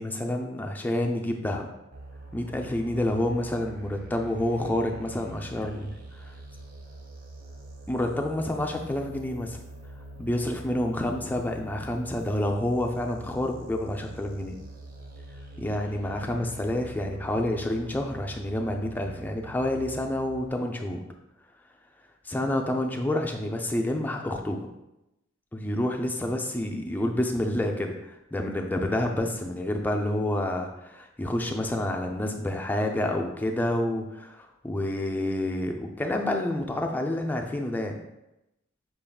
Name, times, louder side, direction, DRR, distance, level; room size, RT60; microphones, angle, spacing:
voice 1, 0.0-1.7 2.3-5.9 6.2-6.3 7.9-9.6 10.2-14.6 15.6-21.0 22.2-24.6 25.5-38.0, left 1 dB, 10° left, 2 dB, 0.3 m, -28 dB
sound 1, 1.9-20.5, right 1 dB, 45° right, 0.6 m, -45 dB
5.8 x 3.5 x 2.3 m, 0.92 s
head